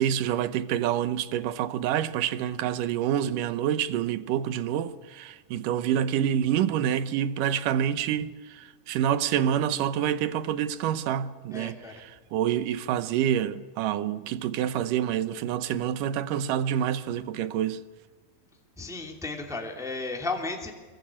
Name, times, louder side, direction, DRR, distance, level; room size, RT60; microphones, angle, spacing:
voice 1, 0.0-17.8, right 10 dB, 70° right, 2.3 m, -27 dB
voice 2, 11.5-11.9 18.8-20.7, left 3 dB, ahead, 2.3 m, -34 dB
25.0 x 22.0 x 8.6 m
omnidirectional pair, 4.2 m